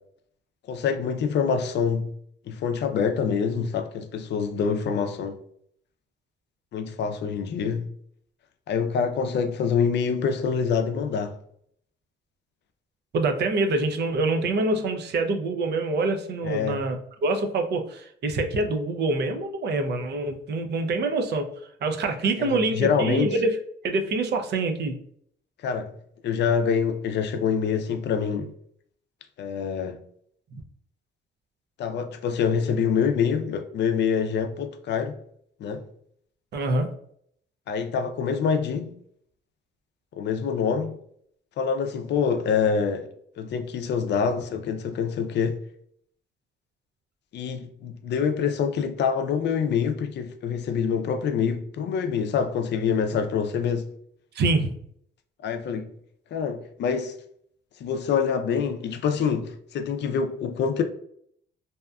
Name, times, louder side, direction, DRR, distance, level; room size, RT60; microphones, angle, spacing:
voice 1, 0.7-2.1 2.5-5.4 6.7-7.9 8.7-11.4 16.4-16.8 22.4-23.3 25.6-26.0 26.2-28.5 29.4-30.0 31.8-35.2 35.6-35.8 37.7-38.9 40.2-41.0 41.6-43.1 43.4-45.6 47.3-53.9 55.4-55.9 56.3-57.1 57.8-60.8, left 6 dB, 60° left, 0.4 m, -26 dB
voice 2, 13.1-21.5 21.8-23.6 23.8-25.0 36.5-36.9 54.3-54.8, right 2 dB, 60° right, 0.5 m, -25 dB
2.7 x 2.2 x 2.3 m
cardioid pair, 90°, 20 cm